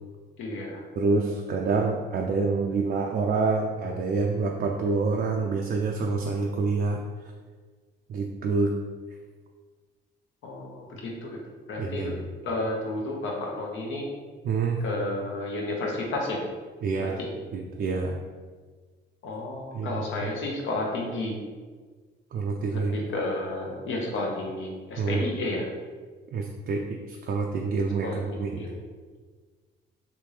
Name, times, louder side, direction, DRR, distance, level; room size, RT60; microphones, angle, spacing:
voice 1, 0.4-0.8 10.4-11.4 11.7-12.1 12.4-14.0 14.8-16.4 17.0-17.3 19.2-21.4 22.7-25.6 28.0-28.7, left 2 dB, 75° left, -1 dB, 0.8 m, -32 dB
voice 2, 1.0-7.0 8.1-8.7 11.8-12.2 14.4-14.8 16.8-17.2 17.5-18.2 19.7-20.3 22.3-23.0 25.0-25.2 26.3-28.6, right 4 dB, 55° right, 1 dB, 0.4 m, -27 dB
3.4 x 2.6 x 3.2 m, 1.5 s
cardioid pair, 90°, 20 cm